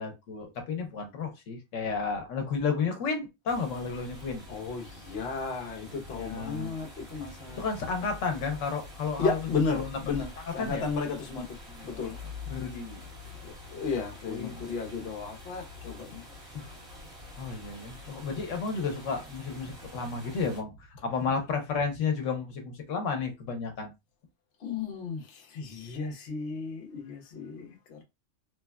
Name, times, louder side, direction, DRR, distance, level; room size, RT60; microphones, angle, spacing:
voice 1, 0.0-4.4 6.1-6.8 7.6-9.4 9.7-10.0 10.6-10.8 11.7-12.1 12.5-13.0 14.3-14.6 16.5-16.7 17.4-20.7 21.0-23.9, left 5 dB, 90° left, 1.0 m, -32 dB
sound 1, 3.5-20.6, left 2 dB, 45° right, 1.5 m, -46 dB
voice 2, 4.5-7.7 9.2-10.3 10.5-11.6 11.8-12.2 13.2-16.2 24.6-28.0, left 4 dB, 60° left, 0.9 m, -34 dB
3.1 x 2.1 x 2.2 m
omnidirectional pair, 1.3 m